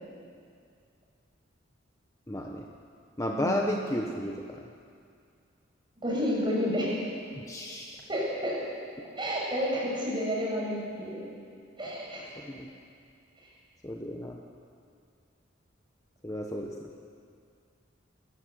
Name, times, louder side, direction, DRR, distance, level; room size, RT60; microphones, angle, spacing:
voice 1, 2.3-2.7 3.2-4.6 7.5-8.0 12.4-12.7 13.8-14.4 16.2-16.9, left 1 dB, 15° left, 0 dB, 1.2 m, -33 dB
voice 2, 6.0-6.9 8.1-8.6 9.2-11.2 11.8-12.2, equal, 25° right, -4 dB, 6.9 m, -30 dB
29.0 x 14.0 x 8.2 m, 2.3 s
head